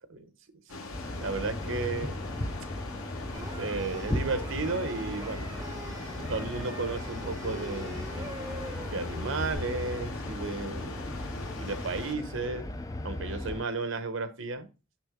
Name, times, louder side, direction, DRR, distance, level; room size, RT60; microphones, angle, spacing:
sound 1, 0.7-12.2, left 3 dB, 85° left, 1.0 m, -42 dB
sound 2, 0.9-13.6, left 1 dB, 15° left, 0.4 m, -37 dB
voice 1, 1.2-2.3 3.6-5.5 6.3-8.0 8.9-11.0 11.6-12.6 13.0-14.7, right 3 dB, 70° right, 10 dB, 0.9 m, -33 dB
sound 3, 3.3-9.5, right 2 dB, 15° right, 0.8 m, -44 dB
6.0 x 5.9 x 3.5 m, 0.32 s
head